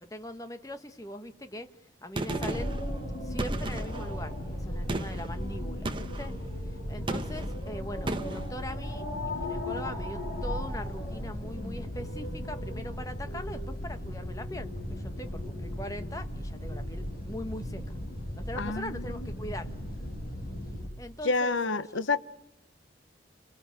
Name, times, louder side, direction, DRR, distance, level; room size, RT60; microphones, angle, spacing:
voice 1, 0.0-1.7 2.0-2.7 3.2-6.3 6.9-18.0 18.3-19.8 21.0-21.6 21.9-22.0, left 1 dB, 15° left, 8 dB, 1.3 m, -41 dB
Gunshot gunfire, 2.2-2.8 3.4-4.1 4.9-5.3 5.9-6.3 7.1-7.6 8.1-8.5, right 2 dB, 25° right, 1.3 m, -34 dB
sound 1, 2.3-20.9, left 1 dB, 45° left, 7.6 m, -36 dB
voice 2, 18.5-19.1 21.2-22.2, left 3 dB, 80° left, 14 dB, 0.9 m, -28 dB
28.5 x 21.5 x 8.9 m, 0.85 s
head